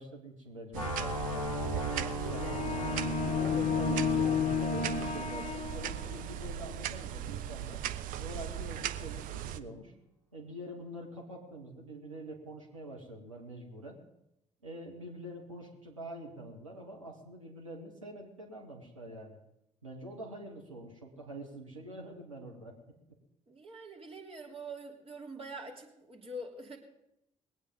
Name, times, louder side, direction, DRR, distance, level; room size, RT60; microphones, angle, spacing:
voice 1, 0.0-1.5 1.9-2.6 3.2-7.8 8.2-9.9 10.3-14.0 14.6-19.4 19.8-22.7, right 1 dB, 90° right, 0 dB, 1.5 m, -45 dB
sound 1, 0.7-6.7, equal, 90° left, 0.7 m, -39 dB
sound 2, 0.7-9.6, right 11 dB, 55° right, 0.6 m, -38 dB
voice 2, 1.9-2.6 23.5-26.8, right 1 dB, 35° right, -1 dB, 3.0 m, -45 dB
sound 3, 2.3-6.3, left 6 dB, 50° left, 0.9 m, -32 dB
20.0 x 8.8 x 5.4 m, 0.83 s
figure-of-eight pair, 45°, 16 cm